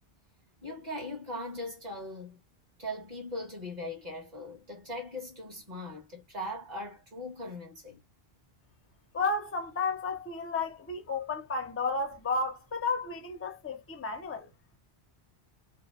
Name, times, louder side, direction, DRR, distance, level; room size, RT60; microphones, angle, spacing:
voice 1, 0.6-2.4 2.8-8.0, left 1 dB, 40° right, 1.2 m, -40 dB
voice 2, 9.1-14.5, left 3 dB, 25° left, 0.3 m, -32 dB
2.8 x 2.1 x 2.3 m
omnidirectional pair, 1.1 m